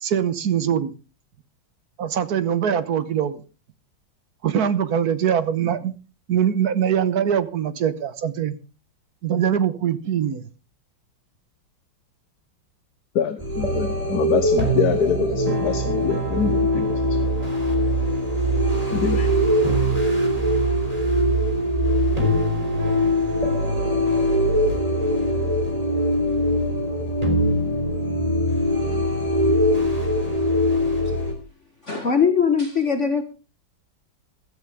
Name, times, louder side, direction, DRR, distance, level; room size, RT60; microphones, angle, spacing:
voice 1, 0.0-0.9 2.0-3.4 4.4-5.9 6.3-8.6 9.2-10.4, right 9 dB, 55° right, 13 dB, 1.3 m, -22 dB
voice 2, 13.1-17.0 18.9-19.3, left 7 dB, 55° left, 9 dB, 1.5 m, -25 dB
sound 1, 13.4-31.3, equal, 15° right, 3.3 m, -22 dB
voice 3, 31.8-33.2, left 6 dB, 40° left, 7 dB, 1.4 m, -20 dB
15.5 x 13.0 x 3.5 m, 0.32 s
omnidirectional pair, 2.2 m